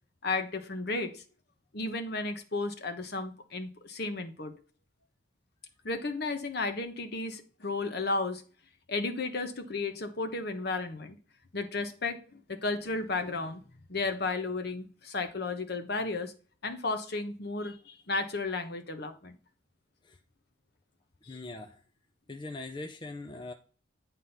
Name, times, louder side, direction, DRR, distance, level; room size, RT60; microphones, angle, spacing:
voice 1, 0.2-1.2 1.7-4.5 5.8-8.4 8.9-11.2 11.5-13.6 13.9-16.3 16.6-19.3 21.2-21.4, left 3 dB, 55° left, 1.1 m, -33 dB
voice 2, 21.3-21.8 22.3-23.5, left 2 dB, 25° left, 0.6 m, -41 dB
9.6 x 3.7 x 5.7 m
head